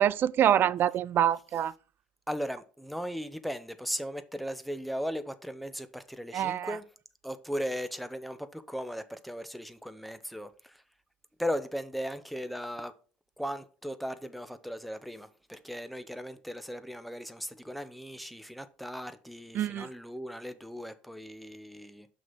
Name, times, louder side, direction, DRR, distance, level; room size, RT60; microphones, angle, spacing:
voice 1, 0.0-1.7 6.3-6.7 19.5-19.9, right 10 dB, 45° right, 0.4 m, -25 dB
voice 2, 2.3-6.9 7.2-10.8 11.4-12.9 13.4-22.1, equal, ahead, 0.8 m, -37 dB
6.2 x 3.9 x 6.1 m
hypercardioid pair, 70°, 5 cm